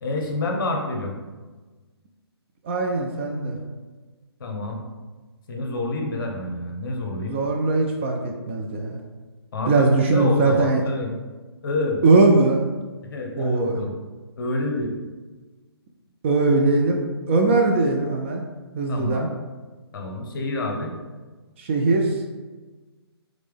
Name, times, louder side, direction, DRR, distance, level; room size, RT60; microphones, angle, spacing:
voice 1, 0.0-1.2 4.4-4.8 5.5-7.4 9.5-11.1 11.6-12.0 13.1-13.9 14.4-14.9 18.9-19.3 19.9-20.9, left 2 dB, 50° left, 2 dB, 0.9 m, -28 dB
voice 2, 2.6-3.6 7.3-9.0 9.7-10.8 12.0-12.6 13.4-13.8 16.2-18.4 18.8-19.3 21.6-22.2, right 3 dB, 25° right, 2 dB, 0.4 m, -20 dB
3.7 x 3.3 x 3.5 m, 1.3 s
figure-of-eight pair, 140°, 14 cm